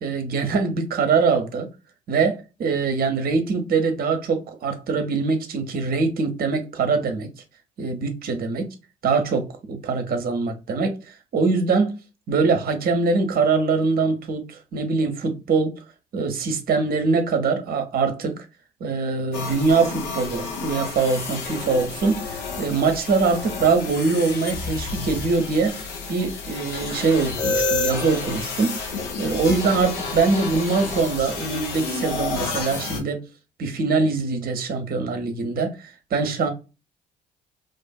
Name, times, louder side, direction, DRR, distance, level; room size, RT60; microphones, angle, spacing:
voice 1, 0.0-1.7 2.1-7.3 7.8-8.7 9.0-11.0 11.3-12.0 12.3-15.8 16.1-18.4 18.8-25.8 26.1-33.2 33.6-36.5, right 4 dB, 45° right, 0.8 m, -23 dB
sound 1, 19.3-33.0, left 4 dB, 75° left, 0.8 m, -30 dB
2.5 x 2.5 x 2.2 m
hypercardioid pair, 50°, 21 cm